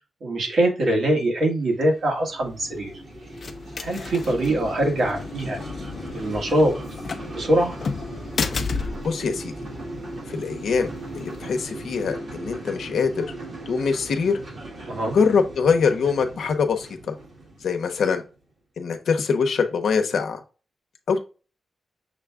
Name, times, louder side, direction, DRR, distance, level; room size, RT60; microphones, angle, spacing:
voice 1, 0.2-2.9 3.8-5.6 6.1-6.7 7.3-7.7 14.9-15.1, right 1 dB, 65° right, 0 dB, 1.6 m, -23 dB
sound 1, 1.7-18.3, right 2 dB, 50° right, 1.6 m, -39 dB
sound 2, 2.4-12.0, left 4 dB, 45° left, 0.5 m, -34 dB
voice 2, 8.8-9.5 10.3-13.3 13.7-14.4 15.1-17.1 17.6-18.2 18.8-20.4 21.1-21.2, left 5 dB, 80° left, 7 dB, 0.8 m, -23 dB
6.4 x 2.3 x 3.5 m, 0.34 s
wide cardioid pair, 170°, 0 cm